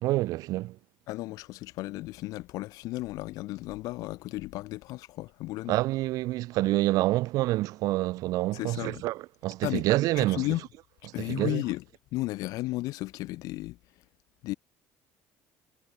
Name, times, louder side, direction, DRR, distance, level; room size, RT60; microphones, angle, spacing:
voice 1, 0.0-0.8 5.7-10.6 11.2-11.6, right 17 dB, 70° right, 3.8 m, -27 dB
voice 2, 1.1-5.7 8.5-9.0 9.6-9.8 10.2-10.6 11.1-11.8 12.1-13.8 14.4-14.5, left 18 dB, 70° left, 1.3 m, -34 dB
supercardioid pair, 95°, 6 cm